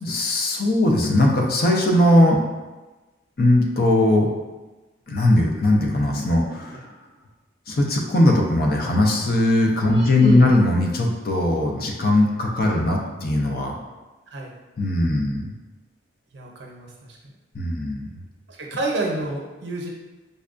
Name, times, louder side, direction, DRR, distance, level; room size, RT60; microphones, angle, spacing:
voice 1, 0.0-2.4 3.4-4.3 5.1-6.9 7.7-13.8 14.8-15.4 17.5-18.2, left 1 dB, 50° left, 0 dB, 0.5 m, -19 dB
voice 2, 9.8-10.4 12.9-13.1 14.3-14.5 16.3-17.2 18.5-19.9, right 1 dB, 65° right, -1 dB, 0.7 m, -28 dB
5.2 x 2.2 x 2.5 m, 1.2 s
head